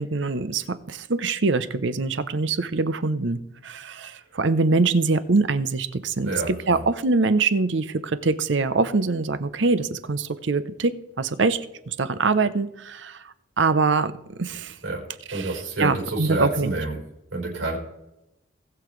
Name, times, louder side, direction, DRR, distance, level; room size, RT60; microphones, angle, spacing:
voice 1, 0.0-11.6 11.9-13.2 13.6-14.8 15.3-15.5 15.8-16.7, right 3 dB, 70° right, 14 dB, 0.7 m, -24 dB
voice 2, 6.2-6.8 14.8-17.0 17.3-17.8, right 2 dB, 90° right, -2 dB, 4.6 m, -28 dB
19.5 x 6.9 x 3.2 m, 0.87 s
head